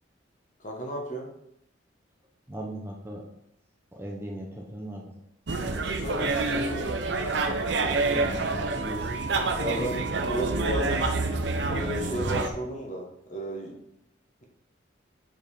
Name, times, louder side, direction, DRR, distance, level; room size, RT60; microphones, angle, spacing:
voice 1, 0.6-1.3 5.5-6.9 9.5-11.2 11.6-13.7, equal, 40° left, 1 dB, 1.1 m, -34 dB
voice 2, 2.5-3.2 3.9-5.1 7.9-9.1, right 1 dB, 10° right, -1 dB, 0.6 m, -38 dB
sound 1, 5.5-12.5, right 3 dB, 65° right, 0.6 m, -27 dB
5.2 x 5.1 x 4.2 m, 0.79 s
head